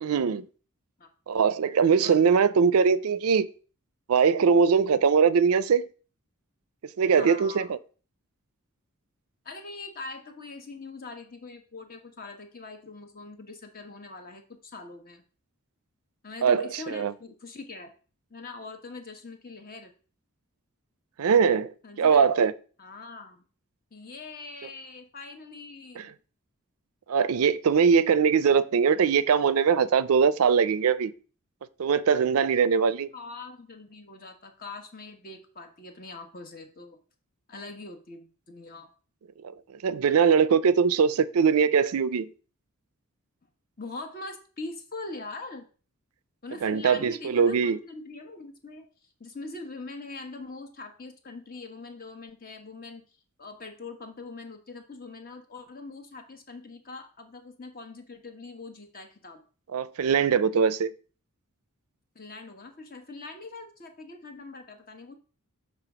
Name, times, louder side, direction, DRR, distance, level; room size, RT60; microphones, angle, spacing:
voice 1, 0.0-0.4 1.3-3.5 4.1-5.9 7.0-7.8 16.4-17.1 21.2-22.5 26.0-26.1 27.1-31.1 31.8-33.1 39.8-42.3 46.6-47.8 59.7-60.9, right 6 dB, 80° right, 0.4 m, -22 dB
voice 2, 7.1-7.7 9.4-15.2 16.2-17.9 18.3-19.9 21.8-22.3 22.8-23.4 23.9-26.1 33.1-37.0 37.5-38.9 43.8-45.7 46.4-48.9 49.2-53.0 53.4-59.4 62.1-65.2, left 3 dB, 40° left, 1.1 m, -42 dB
6.8 x 3.4 x 6.0 m
head